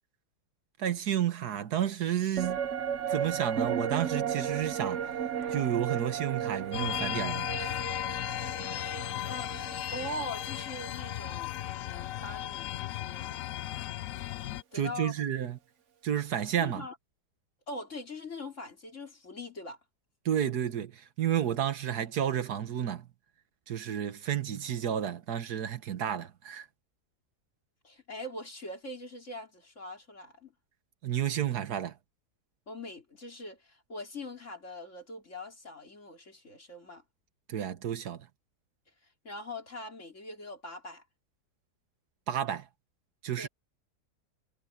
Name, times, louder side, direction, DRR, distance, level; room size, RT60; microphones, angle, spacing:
voice 1, 0.8-2.6 3.1-5.0 5.5-7.8 14.7-15.6 16.0-16.8 20.3-23.1 23.7-26.7 31.0-31.9 37.5-38.2 42.3-42.7 43.2-43.5, right 10 dB, 75° right, 1.7 m, -31 dB
sound 1, 2.4-11.9 12.2-12.3, right 8 dB, 50° right, 1.4 m, -35 dB
sound 2, 6.7-14.6, left 14 dB, 70° left, 0.9 m, -36 dB
voice 2, 9.3-9.6 9.9-13.3 14.7-15.1 16.6-17.0 17.7-19.8 27.8-30.5 32.7-37.0 39.2-41.0 43.4-43.5, left 1 dB, 45° left, 3.5 m, -42 dB
omnidirectional pair, 1.7 m